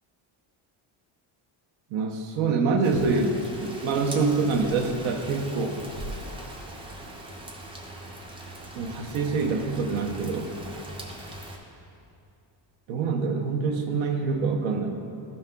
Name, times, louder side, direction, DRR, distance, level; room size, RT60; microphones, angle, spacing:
voice 1, 1.9-3.4 3.6-5.8 8.7-10.5 12.9-15.0, right 4 dB, 70° right, 4 dB, 0.8 m, -25 dB
Rain, 2.8-11.6, right 1 dB, 10° right, 0.4 m, -40 dB
12.0 x 5.5 x 2.2 m, 2.6 s
cardioid pair, 155°, 48 cm